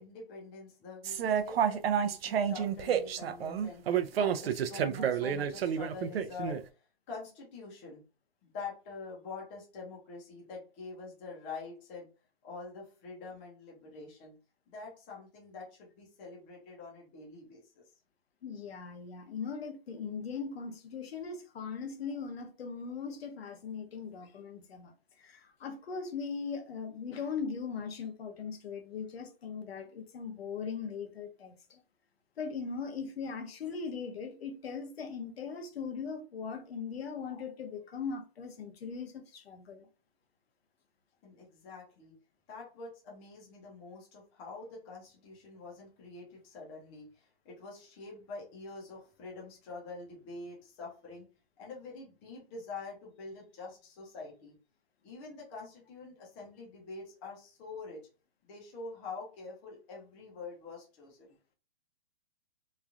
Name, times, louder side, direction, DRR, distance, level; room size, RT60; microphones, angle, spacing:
voice 1, 0.0-6.6 7.1-8.0 8.4-12.1 12.4-14.4 14.7-17.8 41.2-42.2 42.5-51.3 51.6-54.6 55.0-58.0 58.5-61.3, left 4 dB, 15° left, 0.5 m, -46 dB
sound 1, 1.0-6.6, right 8 dB, 75° right, 0.5 m, -30 dB
voice 2, 18.4-31.8 32.4-39.9, left 5 dB, 80° left, 0.8 m, -39 dB
3.1 x 2.4 x 2.4 m
hypercardioid pair, 165°, 30 cm